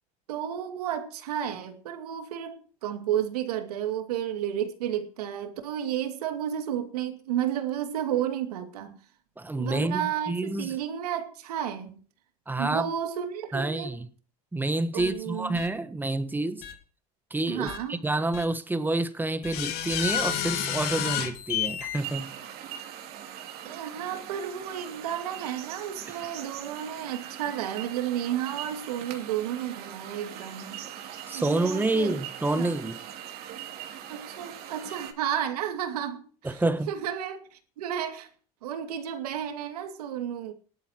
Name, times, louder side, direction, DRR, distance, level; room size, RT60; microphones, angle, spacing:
voice 1, 0.3-9.0 9.5-12.0 12.6-14.0 14.9-15.6 17.5-18.0 23.6-30.8 31.3-32.1 32.5-32.7 34.1-36.6 36.9-38.3 38.6-40.5, right 10 dB, 85° right, 2.4 m, -32 dB
voice 2, 9.4-10.8 12.5-12.9 13.5-14.1 14.5-16.6 17.3-22.3 31.3-33.0 36.4-36.9, right 2 dB, 10° right, 1.3 m, -28 dB
sound 1, 15.0-15.1 15.6-15.7 16.6-16.7 17.7-17.8 18.3-18.4 19.4-22.0, left 10 dB, 55° left, 2.4 m, -30 dB
sound 2, 22.0-35.1, right 10 dB, 55° right, 2.6 m, -41 dB
18.5 x 12.0 x 3.0 m
hypercardioid pair, 95°, 19 cm